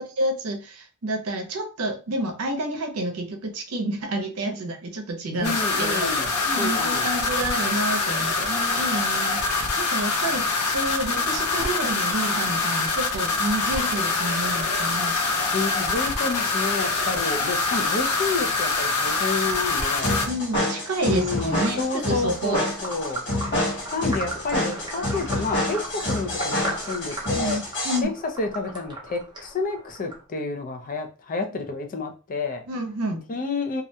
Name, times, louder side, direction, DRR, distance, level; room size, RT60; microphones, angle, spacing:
voice 1, 0.0-15.2 20.2-22.6 27.3-28.1 32.7-33.2, right 1 dB, 70° right, 5 dB, 0.6 m, -29 dB
sound 1, 5.4-20.2, left 3 dB, 85° left, 0.6 m, -25 dB
voice 2, 5.4-6.3 6.6-7.1 15.5-20.2 21.1-23.2 23.9-27.6 28.0-28.1 28.4-32.6 33.3-33.8, left 3 dB, 40° left, 5 dB, 0.4 m, -29 dB
sound 2, 20.0-28.0, left 1 dB, 55° left, 1.0 m, -28 dB
sound 3, 21.0-30.2, right 1 dB, 20° right, 0.6 m, -37 dB
2.4 x 2.1 x 2.6 m, 0.33 s
head